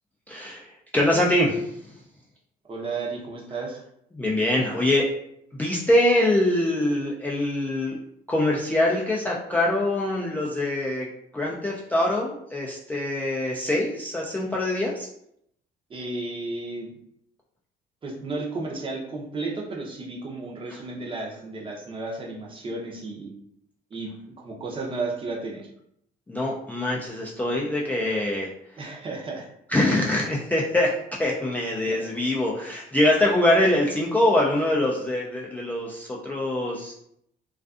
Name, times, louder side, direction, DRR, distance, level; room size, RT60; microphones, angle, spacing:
voice 1, 0.3-1.9 4.1-5.1 5.5-8.0 8.3-11.1 11.3-15.1 26.3-28.5 29.7-30.9 31.2-36.9, left 1 dB, 10° left, -4 dB, 0.3 m, -24 dB
voice 2, 2.7-3.8 15.9-16.9 18.0-23.3 23.9-25.7 28.8-29.5 31.9-32.1, right 3 dB, 30° right, -1 dB, 0.6 m, -33 dB
2.4 x 2.4 x 2.4 m, 0.72 s
cardioid pair, 110°, 17 cm